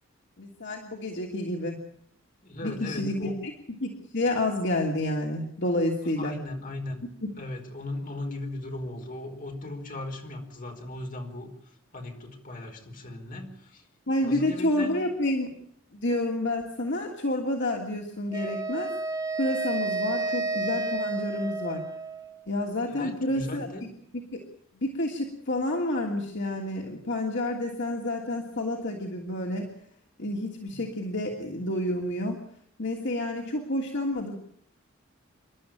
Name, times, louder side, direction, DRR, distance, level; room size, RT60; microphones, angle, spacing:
voice 1, 0.4-1.8 2.6-3.5 3.8-6.4 7.2-7.3 14.1-15.5 15.9-18.9 19.4-21.8 22.5-23.9 24.3-24.4 24.7-29.7 30.2-32.4 32.8-34.3, left 1 dB, 60° left, 1 dB, 3.0 m, -29 dB
voice 2, 2.4-3.3 6.0-7.1 7.4-11.5 11.9-13.8 14.2-15.0 22.9-23.9 30.7-30.8, left 2 dB, 40° left, 3 dB, 4.7 m, -37 dB
Wind instrument woodwind instrument, 18.3-22.5, right 3 dB, 20° right, 1.9 m, -31 dB
28.5 x 12.5 x 8.9 m, 0.67 s
head